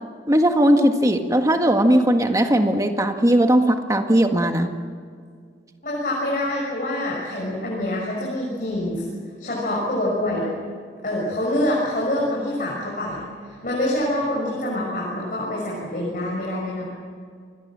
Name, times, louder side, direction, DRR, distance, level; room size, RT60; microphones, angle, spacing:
voice 1, 0.3-4.7, right 1 dB, 20° right, 5 dB, 1.7 m, -18 dB
voice 2, 5.8-9.0 9.4-10.5 11.0-13.2 13.6-16.9, left 1 dB, 50° left, -4 dB, 6.5 m, -25 dB
28.5 x 22.0 x 7.5 m, 2.1 s
head